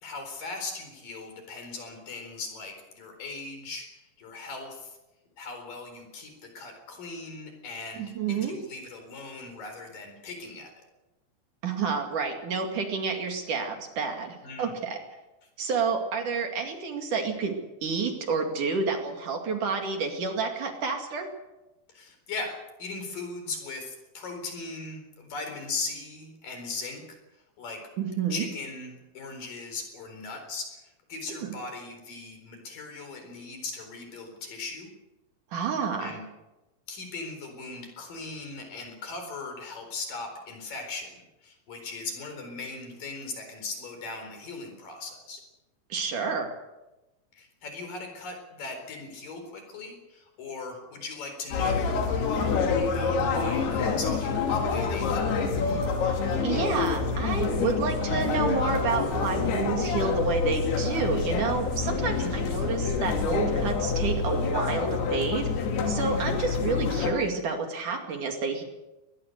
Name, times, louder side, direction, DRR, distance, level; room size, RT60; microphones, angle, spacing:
voice 1, 0.0-5.0 5.4-10.8 14.4-14.7 21.9-27.2 27.6-27.8 28.3-34.9 36.0-36.3 36.9-45.4 47.3-55.5 62.2-62.4, left 3 dB, 60° left, 5 dB, 5.7 m, -39 dB
voice 2, 8.0-8.6 11.6-15.0 15.6-21.3 28.0-28.5 31.4-31.5 35.5-36.2 45.9-46.5 56.4-65.5 65.9-68.6, right 4 dB, 55° right, 4 dB, 3.7 m, -29 dB
sound 1, 51.5-67.1, left 5 dB, 85° left, 4.4 m, -27 dB
Wind instrument woodwind instrument, 57.7-65.0, right 4 dB, 75° right, 6.8 m, -41 dB
22.0 x 20.0 x 6.7 m, 1.0 s
omnidirectional pair, 4.4 m